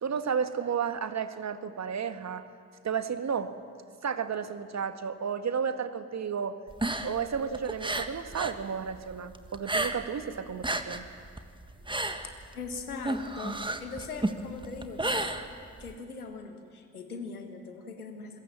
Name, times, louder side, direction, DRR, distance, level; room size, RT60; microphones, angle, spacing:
voice 1, 0.0-2.4 2.8-3.5 4.0-6.6 7.0-11.0, right 7 dB, 40° right, 10 dB, 1.6 m, -32 dB
sound 1, 6.7-8.6 8.9-10.2 10.5-15.9, right 2 dB, 10° right, 1.7 m, -32 dB
voice 2, 11.8-15.4 15.8-18.4, left 4 dB, 90° left, 5 dB, 1.8 m, -41 dB
26.5 x 22.0 x 7.5 m, 2.2 s
figure-of-eight pair, 45°, 43 cm